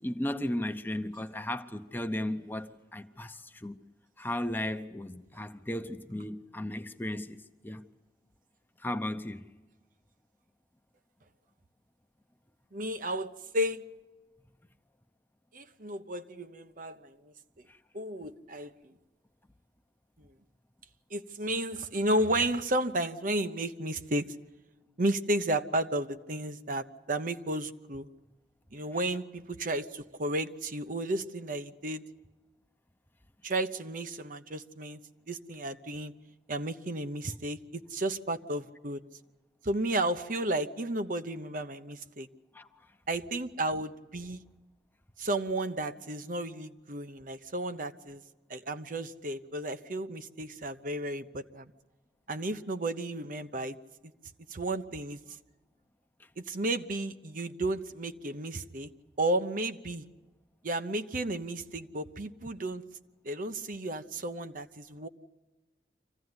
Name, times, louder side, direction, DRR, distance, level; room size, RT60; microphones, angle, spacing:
voice 1, 0.0-3.8 4.2-7.9 8.8-9.5 17.7-17.8 42.5-42.7, left 1 dB, 10° left, 0.8 m, -35 dB
voice 2, 12.7-13.8 15.5-17.3 17.9-18.9 20.2-20.3 21.1-24.3 25.0-28.1 28.7-32.0 33.4-35.0 35.3-36.1 36.5-39.0 39.6-42.3 43.1-44.4 45.2-48.2 48.5-51.7 52.3-53.8 54.5-55.2 56.4-58.9 59.2-60.0 60.6-62.8 63.2-65.1, right 1 dB, 50° right, 0.9 m, -33 dB
25.5 x 15.5 x 9.7 m
head